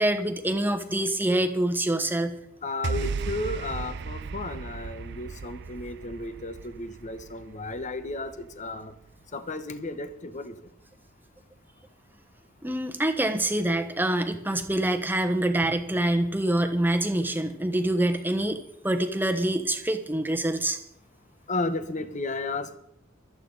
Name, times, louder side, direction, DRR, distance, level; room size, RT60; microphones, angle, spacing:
voice 1, 0.0-2.4 12.6-18.6 18.8-20.8, right 1 dB, 10° right, 6 dB, 1.2 m, -25 dB
voice 2, 2.6-8.9 9.3-10.6 21.5-22.8, left 2 dB, 35° left, 10 dB, 1.0 m, -33 dB
sound 1, 2.8-9.3, right 4 dB, 55° right, 0.5 m, -36 dB
25.0 x 8.9 x 4.0 m, 0.74 s
head